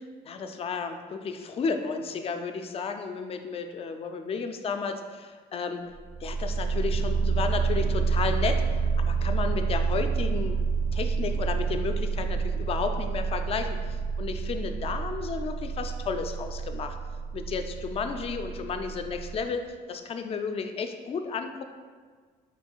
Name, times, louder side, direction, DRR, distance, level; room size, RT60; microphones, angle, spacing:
voice 1, 0.2-5.8 6.2-8.6 9.0-10.6 10.9-13.7 14.2-17.0 17.3-19.6 19.9-21.6, left 5 dB, 35° left, 6 dB, 0.4 m, -32 dB
sound 1, 6.0-19.4, right 5 dB, 60° right, 0.4 m, -29 dB
4.0 x 2.3 x 4.4 m, 1.5 s
cardioid pair, 110°, 17 cm